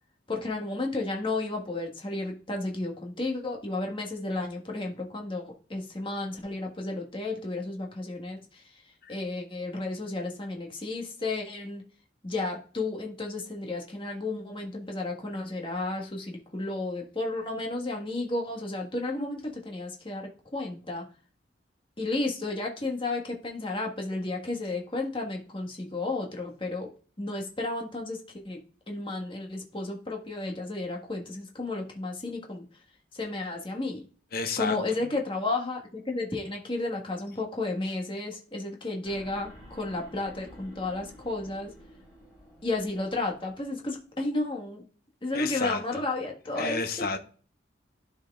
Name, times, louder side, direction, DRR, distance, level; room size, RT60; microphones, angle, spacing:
voice 1, 0.3-8.6 9.1-11.8 12.2-21.1 22.0-26.9 27.2-28.6 28.9-32.6 33.1-34.1 34.6-41.7 42.6-44.8 45.2-47.1, left 2 dB, 30° left, 1.5 m, -32 dB
voice 2, 34.3-34.8 45.3-45.8 46.6-47.2, left 4 dB, 55° left, 0.9 m, -30 dB
sound 1, 39.0-44.0, equal, 5° right, 3.6 m, -51 dB
12.0 x 4.6 x 2.4 m
head